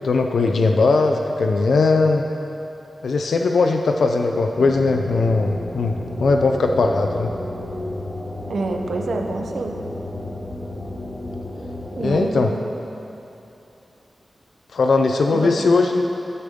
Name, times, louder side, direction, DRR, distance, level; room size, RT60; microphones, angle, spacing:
voice 1, 0.0-2.3 3.0-5.9 6.2-7.3 12.0-12.5 14.7-16.0, left 3 dB, 85° left, 4 dB, 0.5 m, -19 dB
sound 1, 4.6-12.3, left 1 dB, 20° left, 1.6 m, -32 dB
voice 2, 8.5-9.7 11.9-12.5 15.3-15.5, right 3 dB, 75° right, 3 dB, 0.9 m, -26 dB
12.0 x 9.5 x 3.7 m, 2.9 s
wide cardioid pair, 90°, 0 cm